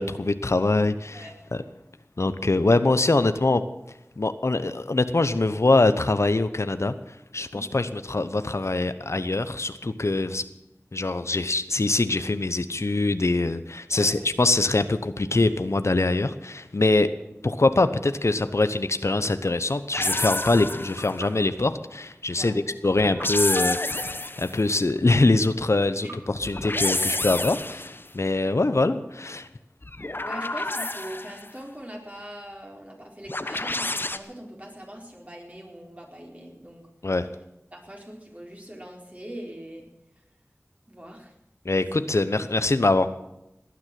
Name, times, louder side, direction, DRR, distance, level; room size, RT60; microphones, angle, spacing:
voice 1, 0.0-1.6 2.2-3.6 4.2-6.9 7.3-10.4 10.9-17.1 17.4-23.8 24.4-26.1 26.4-29.5 37.0-37.3 41.6-43.1, left 2 dB, 70° left, 11 dB, 0.9 m, -23 dB
voice 2, 13.9-14.3 22.4-22.6 26.0-26.2 28.4-28.6 30.2-36.9 37.7-39.9 40.1-40.2 40.9-41.4 42.0-42.1, equal, 30° right, 0 dB, 4.3 m, -42 dB
sound 1, 19.9-21.2 23.0-24.6 26.4-28.0 29.8-31.5 33.3-34.2, left 2 dB, 45° left, 1.0 m, -29 dB
sound 2, 21.0-22.6 23.2-24.8 26.1-27.4, right 2 dB, 70° right, 3.8 m, -48 dB
18.5 x 9.6 x 7.7 m, 0.88 s
wide cardioid pair, 50°, 5 cm